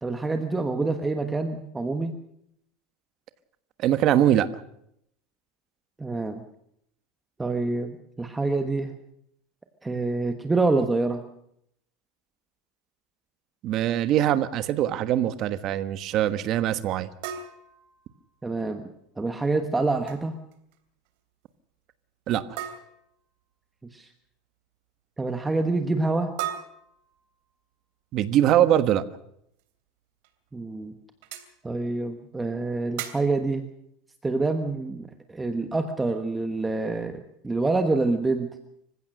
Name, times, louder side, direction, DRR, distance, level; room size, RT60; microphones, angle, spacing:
voice 1, 0.0-2.1 6.0-6.4 7.4-9.0 9.8-11.2 18.4-18.9 19.2-20.3 23.9-24.1 25.2-26.3 30.5-30.9 31.6-33.7 34.2-38.5, right 3 dB, 10° right, 7 dB, 1.2 m, -26 dB
voice 2, 3.8-4.5 13.6-17.1 22.3-22.4 28.1-29.0, right 11 dB, 40° right, 12 dB, 1.3 m, -22 dB
sound 1, 17.2-18.6 19.8-20.2 20.5-20.8 21.1-21.2 22.6-23.2 26.4-27.6 29.6-29.7 30.2-30.3 31.2-31.5 33.0-33.4, right 11 dB, 65° right, 3.2 m, -37 dB
26.0 x 15.5 x 6.6 m, 0.74 s
supercardioid pair, 160°, 0 cm